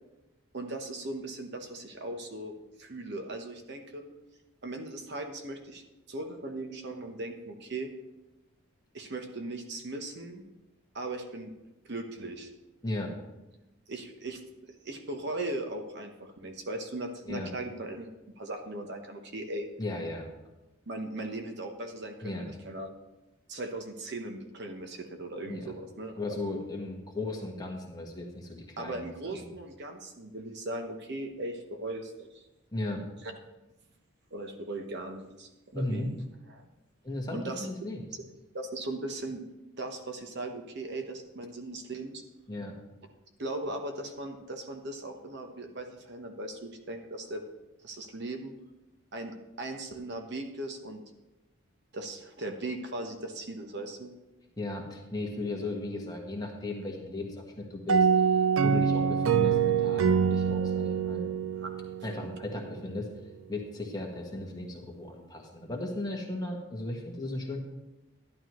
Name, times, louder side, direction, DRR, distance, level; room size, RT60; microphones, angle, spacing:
voice 1, 0.5-2.5 2.8-4.0 4.6-5.8 6.1-7.9 8.9-10.4 10.9-11.5 11.8-12.5 13.9-14.4 14.8-18.1 18.4-19.7 20.9-22.9 23.5-26.3 28.8-32.4 34.3-36.1 36.5-36.7 37.3-37.7 38.5-39.4 39.8-42.2 43.4-47.4 47.8-48.5 49.1-51.0 51.9-54.1 61.6-61.7, right 2 dB, 50° right, 5 dB, 1.0 m, -38 dB
voice 2, 12.8-13.1 17.2-17.5 19.8-20.3 22.2-22.5 25.5-25.7 26.2-29.0 29.4-29.5 32.7-33.0 35.7-36.1 37.0-38.1 42.5-42.8 54.6-61.2 62.0-63.1 63.5-67.6, left 2 dB, 20° left, 0 dB, 1.4 m, -36 dB
sound 1, 57.9-62.5, right 6 dB, 70° right, 0.4 m, -25 dB
11.5 x 11.0 x 3.1 m, 1.0 s
head